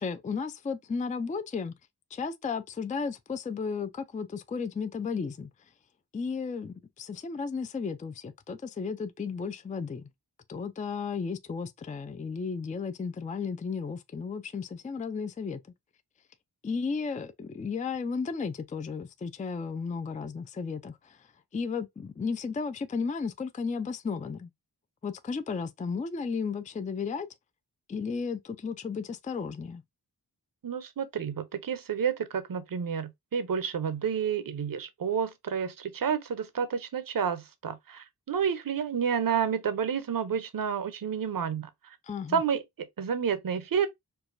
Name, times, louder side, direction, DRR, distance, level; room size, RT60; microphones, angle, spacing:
voice 1, 0.0-1.8 2.1-5.5 6.1-10.1 10.5-15.6 16.6-21.3 21.5-24.5 25.0-27.3 27.9-29.8 42.0-42.4, left 5 dB, 20° left, 0.4 m, -34 dB
voice 2, 30.6-42.0 42.3-43.9, right 7 dB, 50° right, 0.7 m, -30 dB
4.6 x 2.2 x 2.5 m
cardioid pair, 50°, 43 cm